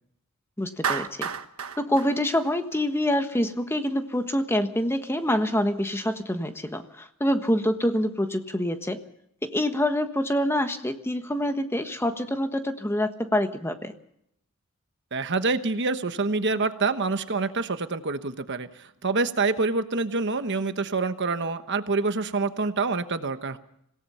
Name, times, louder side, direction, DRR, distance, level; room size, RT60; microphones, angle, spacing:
voice 1, 0.6-1.3 1.8-9.0 9.4-13.9, left 1 dB, 10° left, 7 dB, 1.4 m, -26 dB
Clapping, 0.8-3.1, right 6 dB, 85° right, 1.3 m, -31 dB
voice 2, 15.1-18.7 19.0-23.6, right 3 dB, 55° right, 10 dB, 1.2 m, -26 dB
26.5 x 17.5 x 5.7 m, 0.75 s
head